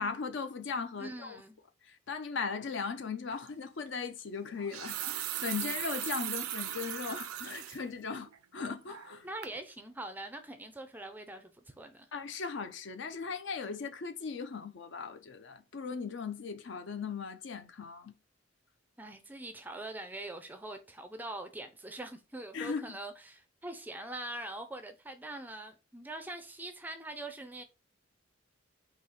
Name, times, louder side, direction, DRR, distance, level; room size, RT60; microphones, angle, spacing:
voice 1, 0.0-1.4 1.8-9.3 12.1-18.1 22.5-23.0, left 5 dB, 55° left, 0.5 m, -38 dB
voice 2, 1.0-1.6 9.2-12.1 19.0-27.6, right 1 dB, 10° right, 0.4 m, -43 dB
sound 1, 3.3-3.5 4.5-7.8 8.3-8.4 8.9-9.2 9.4-9.6, right 12 dB, 90° right, 0.5 m, -38 dB
4.0 x 2.8 x 4.1 m
head